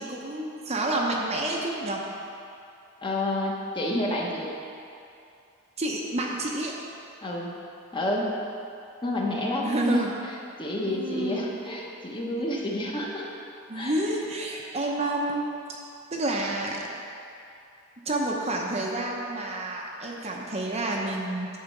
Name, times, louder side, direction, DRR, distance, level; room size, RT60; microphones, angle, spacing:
voice 1, 0.0-2.0 5.8-6.7 9.6-10.1 10.8-11.4 13.7-15.4 16.1-16.8 18.1-21.5, right 2 dB, 30° right, -1 dB, 0.8 m, -29 dB
voice 2, 3.0-4.5 7.2-7.5 7.9-8.3 9.0-13.3 13.7-13.9, left 1 dB, 20° left, -2 dB, 1.1 m, -29 dB
10.5 x 4.3 x 7.2 m, 2.6 s
head